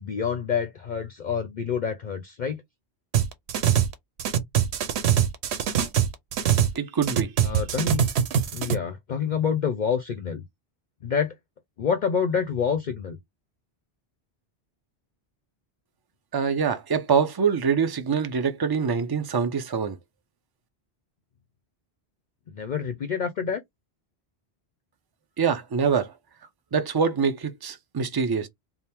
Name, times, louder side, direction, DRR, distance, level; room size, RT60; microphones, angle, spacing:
voice 1, 0.0-2.6 7.4-8.1 8.5-10.4 11.0-11.4 11.8-13.2 22.5-23.6, left 6 dB, 50° left, 0.6 m, -27 dB
sound 1, 3.1-3.9 4.2-6.8 7.0-8.7, right 9 dB, 85° right, 0.9 m, -23 dB
voice 2, 6.8-7.3 16.3-20.0 25.4-26.1 26.7-28.5, right 6 dB, 30° right, 0.5 m, -24 dB
3.5 x 2.0 x 4.3 m
omnidirectional pair, 1.1 m